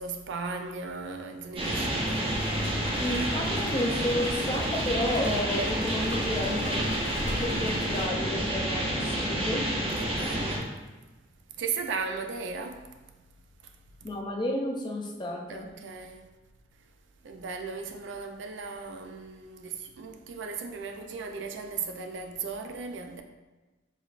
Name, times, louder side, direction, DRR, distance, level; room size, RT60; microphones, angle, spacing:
voice 1, 0.0-2.3 10.0-10.8 11.6-12.8 15.5-16.2 17.2-23.2, right 5 dB, 80° right, 0.4 m, -36 dB
sound 1, 1.5-10.6, right 1 dB, 30° right, 0.7 m, -29 dB
sound 2, 2.0-8.1, left 1 dB, 80° left, 0.6 m, -39 dB
voice 2, 3.0-6.8 7.2-9.7 14.0-15.7, left 1 dB, 25° left, 0.5 m, -31 dB
5.0 x 3.2 x 2.5 m
head